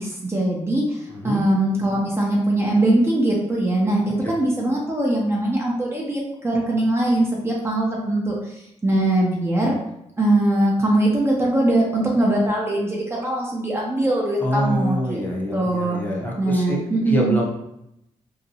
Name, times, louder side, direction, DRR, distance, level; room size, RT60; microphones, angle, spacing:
voice 1, 0.0-8.5 8.8-9.8 10.2-15.2 15.5-16.0 16.4-17.3, right 1 dB, 20° right, -3 dB, 0.5 m, -21 dB
voice 2, 1.1-1.4 4.2-4.4 14.4-17.5, equal, 15° left, -3 dB, 0.7 m, -26 dB
2.8 x 2.2 x 2.7 m, 0.82 s
cardioid pair, 85°, 12 cm